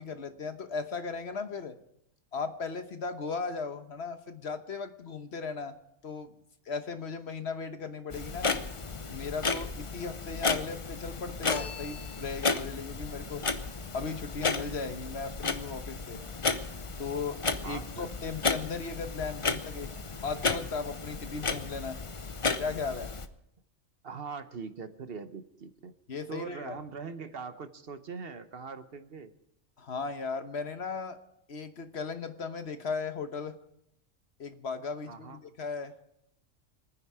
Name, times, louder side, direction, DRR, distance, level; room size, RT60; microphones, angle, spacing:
voice 1, 0.0-1.7 2.3-5.7 6.0-6.3 6.7-8.5 9.1-13.4 13.9-16.2 17.0-19.9 20.2-22.0 22.6-23.1 26.1-26.8 29.8-31.2 31.5-33.6 34.4-35.9, left 4 dB, 55° left, 8 dB, 1.3 m, -36 dB
Clock, 8.1-23.3, left 4 dB, 30° left, 0.7 m, -33 dB
sound 1, 11.5-12.7, left 6 dB, 75° left, 1.6 m, -42 dB
voice 2, 17.6-18.1 24.0-25.9 26.3-29.3 35.1-35.4, right 5 dB, 50° right, 10 dB, 1.1 m, -41 dB
25.5 x 9.8 x 4.8 m, 0.78 s
omnidirectional pair, 1.3 m